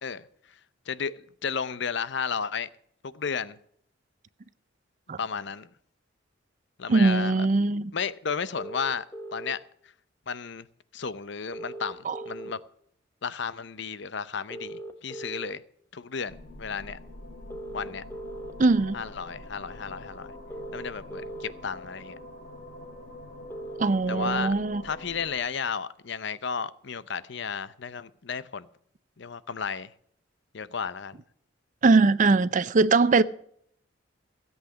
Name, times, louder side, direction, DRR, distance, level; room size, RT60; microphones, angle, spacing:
voice 1, 0.0-0.6 0.9-2.7 3.0-3.6 5.2-5.7 6.8-7.5 7.9-9.0 9.3-9.6 10.3-10.7 10.9-12.6 13.2-15.6 15.9-17.0 17.7-18.0 18.9-20.3 20.7-22.1 24.1-24.5 24.8-28.7 29.2-29.9 30.5-31.2, left 6 dB, 65° left, 0.7 m, -33 dB
voice 2, 6.9-7.9 12.1-12.2 18.6-19.0 23.8-24.8 31.8-33.2, right 3 dB, 40° right, 0.5 m, -21 dB
sound 1, 8.6-9.5 11.5-12.5 14.5-15.5 17.5-18.5 20.5-21.5 23.5-24.5, right 1 dB, 10° left, 0.8 m, -39 dB
sound 2, 16.3-25.4, left 1 dB, 80° left, 5.0 m, -45 dB
16.0 x 8.2 x 6.2 m
head